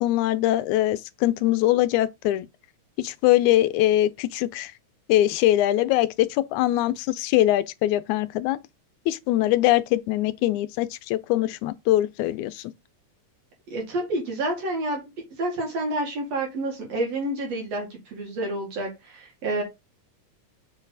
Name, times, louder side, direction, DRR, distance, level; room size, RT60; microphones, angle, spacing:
voice 1, 0.0-2.5 3.0-4.7 5.1-8.6 9.1-12.7, left 14 dB, 80° left, 1.9 m, -22 dB
voice 2, 13.7-15.0 15.4-19.6, right 1 dB, 60° right, 3.0 m, -29 dB
6.9 x 4.2 x 4.0 m
omnidirectional pair, 3.5 m